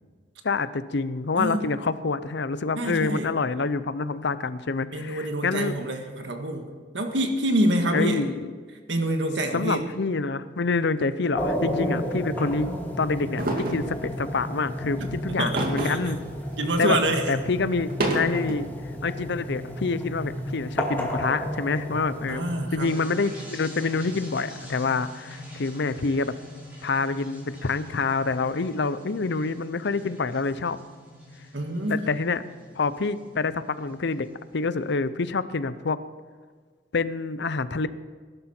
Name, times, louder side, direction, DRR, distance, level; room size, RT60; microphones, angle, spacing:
voice 1, 0.4-5.8 7.9-8.5 9.5-12.7 13.0-16.2 16.8-17.0 17.3-18.7 19.0-26.3 26.8-30.8 31.9-32.4 32.7-34.3 34.5-36.0 36.9-37.9, left 4 dB, 70° left, 14 dB, 0.7 m, -27 dB
voice 2, 2.8-3.3 4.9-8.2 8.9-9.8 15.0-16.0 16.6-17.2 22.3-22.9 31.5-32.0, right 1 dB, 70° right, 4 dB, 1.8 m, -26 dB
sound 1, 11.3-22.7, equal, 10° left, 2.2 m, -32 dB
sound 2, 13.4-13.9 15.6-16.2 16.6-16.7 17.8-18.5, right 1 dB, 55° right, 2.2 m, -27 dB
sound 3, 22.8-35.0, left 1 dB, 10° right, 5.3 m, -44 dB
20.5 x 11.5 x 4.5 m, 1.5 s
head